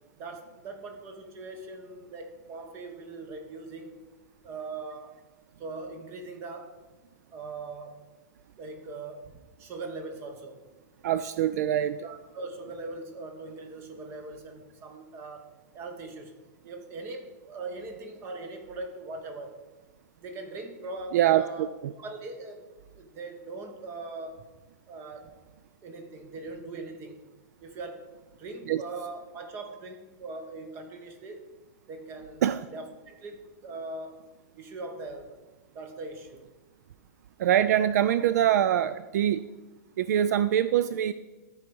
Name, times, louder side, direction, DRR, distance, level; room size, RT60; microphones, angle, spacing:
voice 1, 0.2-4.0 4.4-5.2 5.6-6.8 7.3-8.0 8.6-10.6 12.0-19.7 20.2-21.7 22.0-22.6 22.9-24.5 24.9-25.5 25.8-27.2 27.6-28.1 28.4-31.4 31.9-32.4 32.7-34.3 34.6-35.4 35.7-36.4, right 3 dB, 25° right, 5 dB, 1.1 m, -41 dB
voice 2, 11.0-12.1 21.1-21.9 28.7-28.8 32.4-32.6 37.4-39.4 40.0-41.1, right 11 dB, 65° right, 13 dB, 0.4 m, -24 dB
13.0 x 4.7 x 5.3 m, 1.2 s
supercardioid pair, 165°, 10 cm